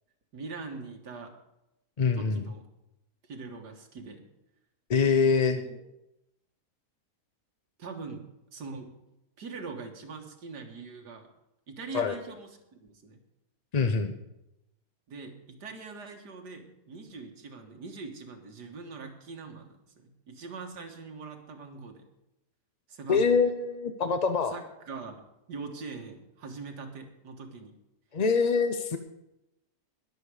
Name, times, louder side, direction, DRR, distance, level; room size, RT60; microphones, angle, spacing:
voice 1, 0.3-1.4 2.1-2.6 3.3-4.3 5.5-5.8 7.8-9.0 9.4-11.3 11.7-13.2 15.1-19.7 20.0-22.0 22.9-23.4 24.5-27.7, right 4 dB, 85° right, 3 dB, 2.1 m, -42 dB
voice 2, 2.0-2.4 4.9-5.6 11.9-12.2 13.7-14.1 23.1-24.5 28.1-29.0, left 5 dB, 55° left, 8 dB, 0.4 m, -24 dB
20.5 x 7.2 x 4.9 m, 0.89 s
omnidirectional pair, 1.7 m